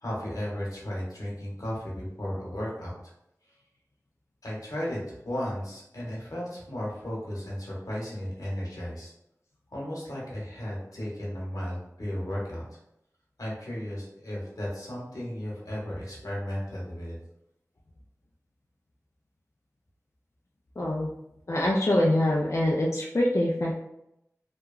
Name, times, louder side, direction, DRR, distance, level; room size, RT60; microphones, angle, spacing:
voice 1, 0.0-2.9 4.4-5.0 5.2-9.1 9.7-12.8 13.4-17.2, equal, 85° left, -6 dB, 0.9 m, -34 dB
voice 2, 20.8-21.1 21.5-23.8, left 1 dB, 50° left, -2 dB, 0.3 m, -24 dB
2.9 x 2.3 x 2.3 m, 0.81 s
wide cardioid pair, 45°, 6 cm